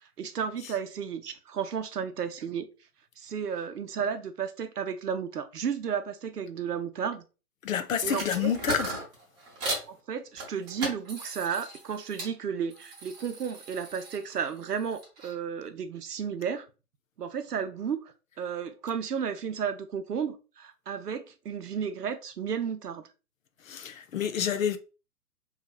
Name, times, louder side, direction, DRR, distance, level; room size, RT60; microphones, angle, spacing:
voice 1, 0.0-2.7 3.2-7.2 8.0-8.5 9.9-16.7 17.2-23.1, right 7 dB, 85° right, 0.6 m, -33 dB
voice 2, 7.6-8.9 23.6-24.8, left 8 dB, 60° left, 0.5 m, -28 dB
sound 1, 8.0-9.9 10.4-12.3 12.7-15.3, right 2 dB, 20° right, 0.8 m, -37 dB
2.8 x 2.7 x 2.4 m
figure-of-eight pair, 125°, 46 cm